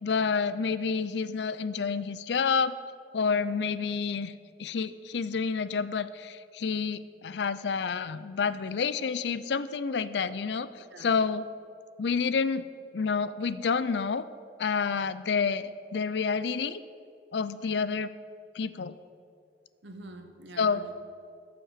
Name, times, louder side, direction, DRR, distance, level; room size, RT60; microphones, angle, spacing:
voice 1, 0.0-2.8 3.1-4.3 4.6-11.4 12.0-12.7 12.9-14.2 14.6-16.8 17.3-18.1 18.5-19.0 20.6-20.8, left 5 dB, 75° left, 15 dB, 0.5 m, -29 dB
voice 2, 10.8-11.1 19.8-20.9, right 2 dB, 85° right, 5 dB, 1.2 m, -46 dB
13.5 x 6.0 x 6.5 m, 2.3 s
head